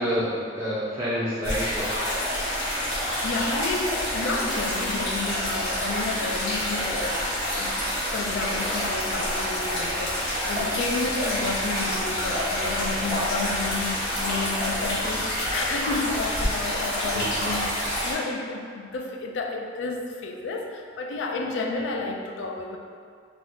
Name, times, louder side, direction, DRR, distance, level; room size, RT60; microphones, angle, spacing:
voice 1, 0.0-1.9 17.1-17.3, equal, 15° right, -11 dB, 0.5 m, -28 dB
sound 1, 1.4-18.1, equal, 65° left, 1.2 m, -27 dB
voice 2, 3.0-7.8 8.1-22.8, left 3 dB, 80° left, 3 dB, 0.3 m, -31 dB
3.3 x 2.4 x 2.6 m, 2.2 s
head